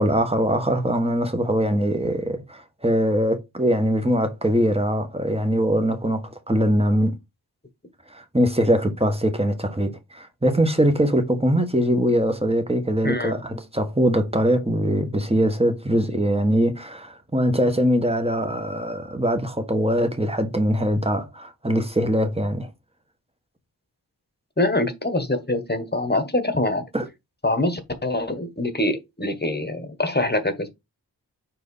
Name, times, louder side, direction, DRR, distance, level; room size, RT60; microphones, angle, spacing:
voice 1, 0.0-7.2 8.1-22.7 26.9-27.0, equal, 15° right, 1.3 m, -22 dB
voice 2, 13.0-13.4 24.6-26.8 27.4-30.7, left 2 dB, 25° left, 1.3 m, -24 dB
4.7 x 3.7 x 5.4 m
wide cardioid pair, 55°, 41 cm